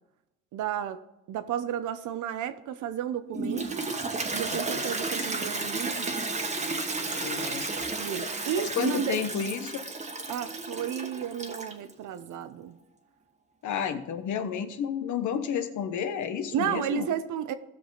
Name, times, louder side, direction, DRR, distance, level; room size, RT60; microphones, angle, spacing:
voice 1, 0.5-1.0 1.3-3.9 4.3-6.2 8.0-9.2 10.3-12.8 16.5-17.5, right 10 dB, 80° right, 0.8 m, -32 dB
Toilet flush, 3.3-11.9, right 3 dB, 25° right, 1.3 m, -32 dB
voice 2, 4.5-4.8 7.0-7.7 8.8-9.8 13.6-17.1, left 8 dB, 75° left, 1.0 m, -31 dB
15.5 x 6.2 x 4.0 m
cardioid pair, 90°, 30 cm